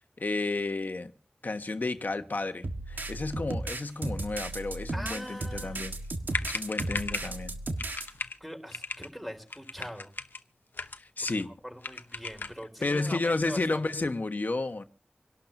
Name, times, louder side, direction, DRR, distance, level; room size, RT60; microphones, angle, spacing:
voice 1, 0.2-1.1 1.4-5.9 6.4-7.5 11.0-11.5 12.8-14.8, left 3 dB, 65° left, 1.3 m, -32 dB
sound 1, 2.6-8.1, right 2 dB, 85° right, 1.5 m, -35 dB
voice 2, 4.9-5.8 8.4-10.1 11.2-11.3 11.6-13.8, equal, ahead, 4.3 m, -42 dB
sound 2, 6.0-6.1 6.3-7.4 7.8-8.4 8.7-9.1 9.5-10.4 10.7-11.5 11.8-12.6, left 4 dB, 90° left, 0.9 m, -37 dB
26.5 x 12.0 x 2.7 m
wide cardioid pair, 45°, 3 cm